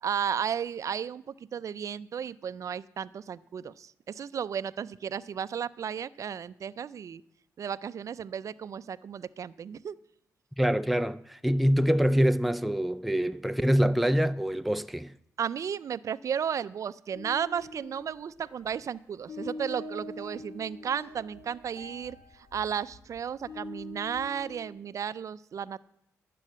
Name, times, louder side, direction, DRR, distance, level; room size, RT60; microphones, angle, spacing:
voice 1, 0.0-7.2 7.6-10.0 15.4-25.8, right 8 dB, 60° right, 0.5 m, -34 dB
voice 2, 10.6-15.1, equal, ahead, 0.4 m, -25 dB
sound 1, 17.1-19.0 19.3-24.7, left 2 dB, 50° left, 2.1 m, -44 dB
11.5 x 7.6 x 7.4 m
cardioid pair, 70°, 6 cm